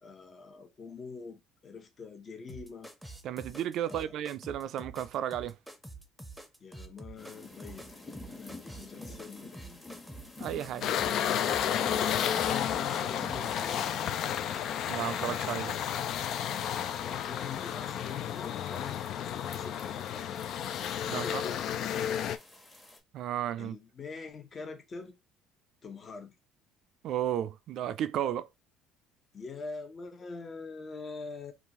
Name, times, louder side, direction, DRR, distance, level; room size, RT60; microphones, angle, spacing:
voice 1, 0.0-2.9 3.8-4.0 6.6-7.9 8.3-10.0 11.6-14.0 17.0-19.0 19.5-20.3 21.1-22.2 23.6-25.1 25.8-26.3 29.3-31.5, left 4 dB, 40° left, 0.9 m, -44 dB
sound 1, 2.5-13.6, right 2 dB, ahead, 0.8 m, -47 dB
voice 2, 3.2-5.6 10.4-10.9 14.9-15.8 21.1-21.4 23.1-23.8 27.0-28.5, right 11 dB, 65° right, 0.3 m, -33 dB
sound 2, 7.2-23.0, left 2 dB, 20° left, 1.1 m, -50 dB
sound 3, 10.8-22.4, left 9 dB, 65° left, 0.3 m, -32 dB
3.6 x 2.4 x 2.9 m
supercardioid pair, 75°, 0 cm